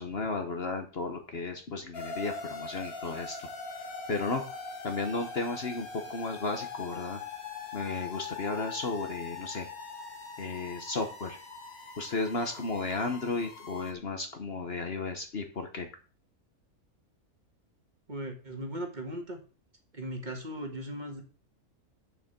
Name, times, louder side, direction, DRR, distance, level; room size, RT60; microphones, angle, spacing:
voice 1, 0.0-3.5 4.1-4.4 4.8-7.2 7.7-9.7 10.4-11.4 12.0-15.9, left 3 dB, 45° left, 6 dB, 1.2 m, -34 dB
sound 1, 1.9-13.9, left 4 dB, 80° left, 2.1 m, -42 dB
voice 2, 18.1-19.4 19.9-21.2, equal, 30° right, 3 dB, 1.7 m, -38 dB
6.9 x 6.5 x 6.7 m, 0.38 s
omnidirectional pair, 1.5 m